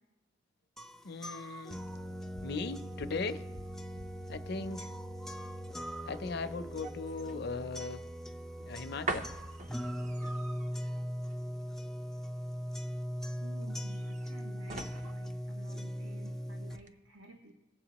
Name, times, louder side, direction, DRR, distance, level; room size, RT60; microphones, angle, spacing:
sound 1, 0.8-16.8, equal, ahead, 0.3 m, -40 dB
voice 1, 1.0-1.8 2.4-3.4 4.3-4.9 6.1-8.0 8.7-9.3, left 4 dB, 55° left, 10 dB, 0.5 m, -38 dB
sound 2, 2.3-16.3 16.7-16.9, right 2 dB, 40° right, 0.6 m, -46 dB
voice 2, 13.4-17.5, right 1 dB, 85° right, 3 dB, 0.9 m, -53 dB
18.5 x 7.7 x 3.0 m, 1.1 s
head